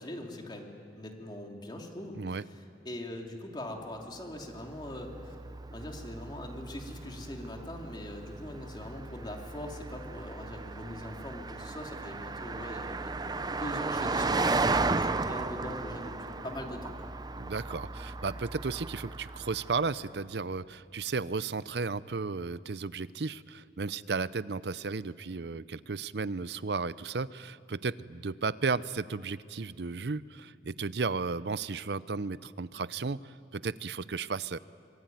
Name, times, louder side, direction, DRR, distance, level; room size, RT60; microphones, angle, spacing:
voice 1, 0.0-5.3 5.7-17.0, left 1 dB, 25° left, 1 dB, 3.1 m, -42 dB
Car passing by, 4.3-20.1, right 3 dB, 25° right, 0.6 m, -35 dB
voice 2, 17.4-34.6, right 4 dB, 65° right, 17 dB, 0.6 m, -34 dB
26.0 x 23.0 x 9.3 m, 2.5 s
head